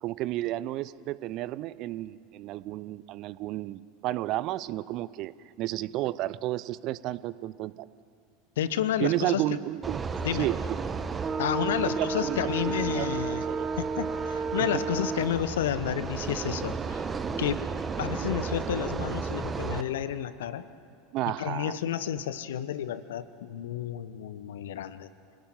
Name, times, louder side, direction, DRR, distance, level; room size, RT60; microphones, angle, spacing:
voice 1, 0.0-5.3 5.6-7.9 9.0-10.0 10.3-10.8 11.8-12.5 12.9-13.7 14.7-14.8 21.1-21.8, right 15 dB, 45° right, 18 dB, 0.7 m, -32 dB
voice 2, 8.6-9.6 10.2-10.5 11.4-13.4 13.8-17.0 17.4-17.7 18.0-20.6 21.3-25.1, left 10 dB, 65° left, 14 dB, 1.0 m, -31 dB
sound 1, 9.8-19.8, right 5 dB, 20° right, 1.4 m, -32 dB
26.5 x 18.5 x 9.2 m, 2.3 s
figure-of-eight pair, 80°, 0 cm